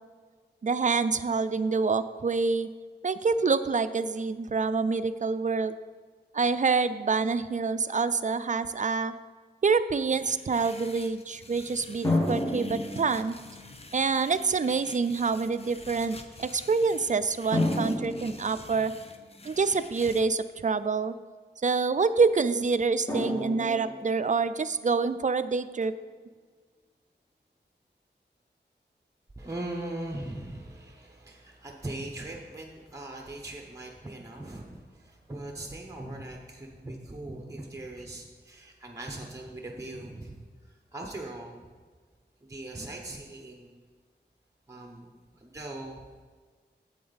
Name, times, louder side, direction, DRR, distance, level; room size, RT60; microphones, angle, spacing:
voice 1, 0.6-2.7 3.0-5.8 6.3-9.1 9.6-13.4 13.9-18.9 19.4-21.1 21.6-25.9, right 4 dB, 40° right, 13 dB, 0.4 m, -26 dB
sound 1, 10.1-20.2, left 2 dB, 35° left, 0.7 m, -48 dB
sound 2, 12.0-13.8 14.7-14.8 17.5-19.2 23.1-24.4, left 1 dB, 15° left, 1.4 m, -31 dB
voice 2, 29.4-40.4 40.6-41.6 42.4-43.7 44.7-46.0, right 1 dB, 15° right, 0 dB, 0.9 m, -40 dB
8.4 x 7.7 x 4.1 m, 1.5 s
wide cardioid pair, 75°, 19 cm